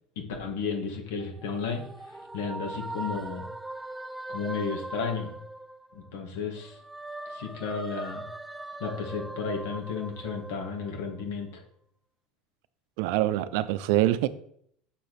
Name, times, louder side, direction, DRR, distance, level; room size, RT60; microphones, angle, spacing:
voice 1, 0.1-3.5 4.3-5.4 5.9-6.8 7.2-8.2 8.8-11.6, left 5 dB, 80° left, 1.8 m, -33 dB
sound 1, 1.2-6.2 6.6-11.3, right 2 dB, 5° right, 0.3 m, -40 dB
voice 2, 13.0-14.3, right 14 dB, 70° right, 0.5 m, -24 dB
6.7 x 5.1 x 4.1 m
supercardioid pair, 130°, 0 cm